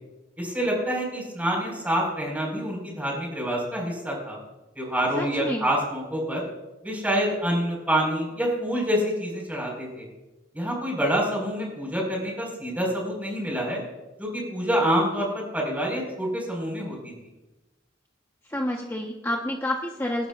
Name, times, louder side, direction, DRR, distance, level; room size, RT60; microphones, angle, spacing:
voice 1, 0.4-4.4 4.8-6.4 6.8-10.1 10.5-13.8 14.2-17.0, equal, 10° right, -2 dB, 5.1 m, -27 dB
voice 2, 5.2-5.7 18.5-20.3, left 1 dB, 15° left, 0 dB, 1.1 m, -29 dB
28.0 x 12.0 x 2.5 m, 1.1 s
head